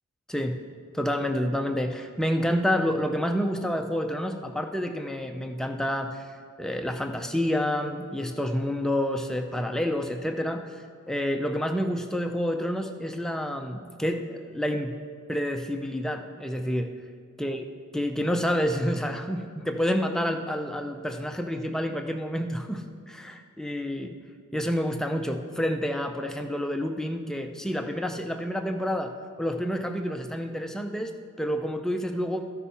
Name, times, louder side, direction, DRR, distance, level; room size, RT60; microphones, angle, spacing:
voice 1, 0.9-6.3 6.6-10.7 11.1-14.9 15.3-16.9 17.4-17.7 17.9-24.2 24.5-29.1 29.4-32.5, equal, ahead, 5 dB, 0.4 m, -28 dB
14.0 x 5.5 x 4.2 m, 2.3 s
head